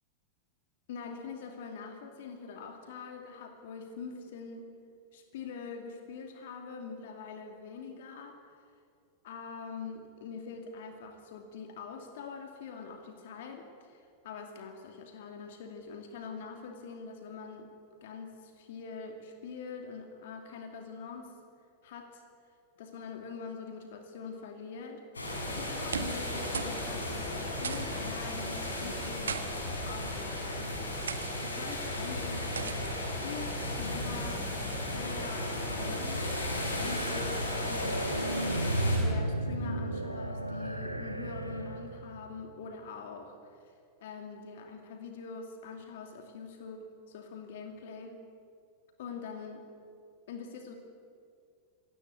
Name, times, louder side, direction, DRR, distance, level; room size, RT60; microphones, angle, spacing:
voice 1, 0.9-4.7 5.1-8.4 9.2-17.7 18.0-21.4 21.8-22.2 22.8-29.4 29.8-30.7 31.0-32.6 33.0-34.5 34.9-36.5 36.8-38.5 39.0-43.7 44.0-48.2 49.0-49.6 50.3-50.8, left 5 dB, 55° left, 5 dB, 2.6 m, -44 dB
sound 1, 25.1-39.0, left 1 dB, 75° left, 6.5 m, -35 dB
sound 2, 25.7-26.3 26.5-26.8 27.1-27.2 27.6-28.0 29.0-29.4 30.2-30.4 31.1-31.3 32.6-32.9, right 6 dB, 70° right, 1.5 m, -37 dB
sound 3, 34.8-42.2, right 1 dB, 90° right, 1.3 m, -34 dB
27.5 x 17.5 x 8.6 m, 2.4 s
figure-of-eight pair, 90°, 0 cm